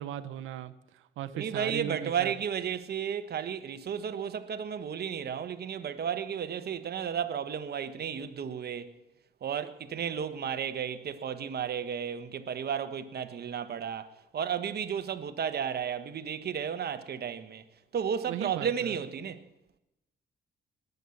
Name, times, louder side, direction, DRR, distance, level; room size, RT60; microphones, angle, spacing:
voice 1, 0.0-2.3 18.3-19.0, right 12 dB, 85° right, 0.7 m, -38 dB
voice 2, 1.3-8.9 9.4-17.6 17.9-19.5, right 8 dB, 55° right, 1.2 m, -33 dB
20.0 x 8.1 x 7.1 m
cardioid pair, 90°, 20 cm